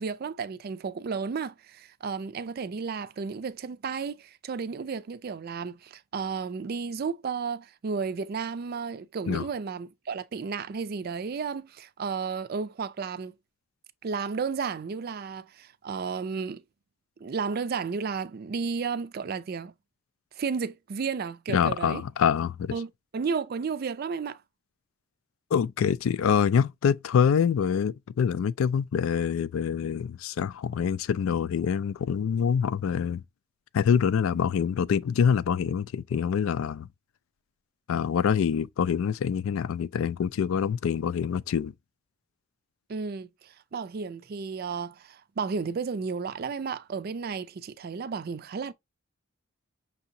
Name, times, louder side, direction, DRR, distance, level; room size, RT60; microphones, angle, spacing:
voice 1, 0.0-13.3 14.0-16.6 17.2-19.7 20.4-22.0 22.7-24.4 42.9-48.7, right 5 dB, 50° right, 0.4 m, -33 dB
voice 2, 21.5-22.8 25.5-33.2 33.7-36.9 37.9-41.7, left 7 dB, 80° left, 0.3 m, -25 dB
5.8 x 2.8 x 2.6 m
head